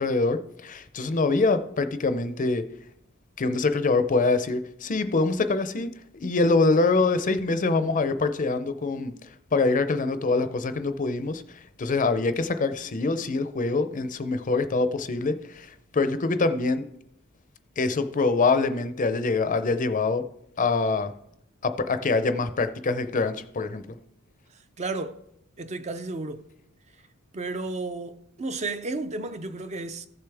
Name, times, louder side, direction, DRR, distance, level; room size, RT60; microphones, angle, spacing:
voice 1, 0.0-2.6 3.4-9.1 9.5-11.4 11.8-15.7 15.9-16.8 17.8-20.2 20.6-21.1 21.6-23.8, left 3 dB, 35° left, 0.5 m, -24 dB
voice 2, 24.5-25.2 25.6-26.5 27.3-30.1, right 3 dB, 30° right, 0.5 m, -33 dB
15.0 x 6.8 x 3.4 m
head